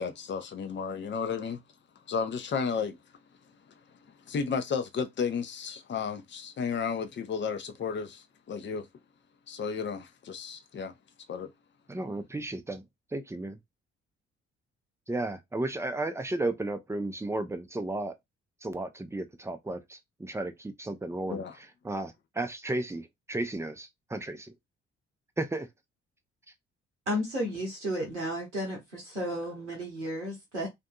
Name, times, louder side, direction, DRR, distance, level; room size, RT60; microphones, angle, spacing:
voice 1, 0.0-1.6 2.1-3.0 3.7-8.9 9.5-10.9 11.3-11.5 21.3-21.6, left 6 dB, 35° left, 0.6 m, -33 dB
voice 2, 11.9-12.8 13.1-13.6 15.1-18.1 18.6-24.5 25.4-25.7, right 2 dB, 10° right, 0.6 m, -34 dB
voice 3, 27.1-30.7, equal, 90° right, 0.8 m, -33 dB
2.6 x 2.5 x 2.2 m
figure-of-eight pair, 45°, 34 cm